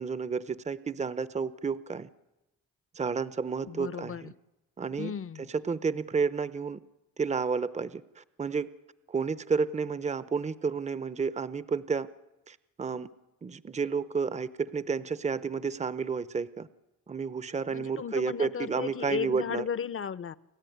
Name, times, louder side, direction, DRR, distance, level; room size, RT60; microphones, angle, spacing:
voice 1, 0.0-2.1 2.9-4.3 4.8-5.1 5.6-6.8 7.2-8.7 9.1-12.1 12.5-13.1 13.4-16.7 17.1-19.6, right 5 dB, 20° right, 15 dB, 0.8 m, -31 dB
voice 2, 3.7-4.3 5.0-5.5 17.7-20.4, left 7 dB, 40° left, 17 dB, 0.8 m, -35 dB
29.0 x 13.5 x 9.4 m, 1.0 s
cardioid pair, 70°, 33 cm